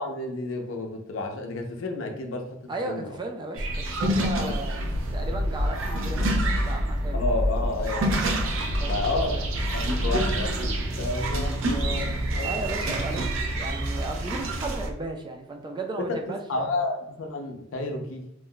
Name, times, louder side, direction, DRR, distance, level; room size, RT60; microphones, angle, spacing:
voice 1, 0.0-2.6 2.8-3.2 4.4-4.5 7.1-8.3 8.9-9.4 9.7-12.6 16.0-18.3, left 2 dB, 80° left, 4 dB, 0.5 m, -31 dB
voice 2, 2.7-4.8 5.1-7.2 8.8-9.5 12.4-13.3 13.6-16.4, right 2 dB, 25° right, 4 dB, 0.3 m, -35 dB
sound 1, 3.6-14.9, right 1 dB, 85° right, 0.5 m, -27 dB
2.5 x 2.1 x 3.7 m, 0.83 s
head